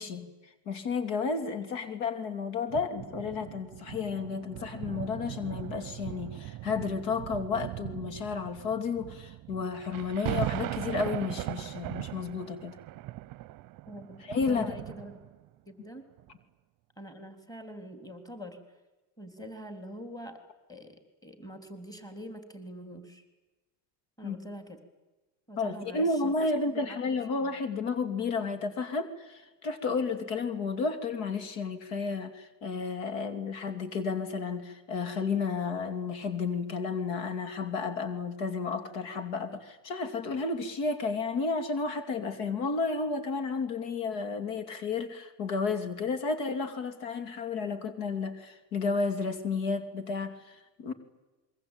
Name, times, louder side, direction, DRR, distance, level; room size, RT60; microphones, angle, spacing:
voice 1, 0.0-12.8 14.2-14.7 24.2-24.4 25.6-50.9, left 4 dB, 60° left, 9 dB, 3.2 m, -32 dB
sound 1, 2.7-15.5 16.2-16.3, right 17 dB, 45° right, 0.8 m, -39 dB
voice 2, 13.9-15.2 15.7-16.1 17.0-18.6 19.2-20.4 20.7-23.2 24.2-24.8 25.5-26.3 26.7-27.5, equal, 5° left, 7 dB, 3.5 m, -45 dB
27.5 x 22.5 x 9.1 m, 1.1 s
supercardioid pair, 125°, 50 cm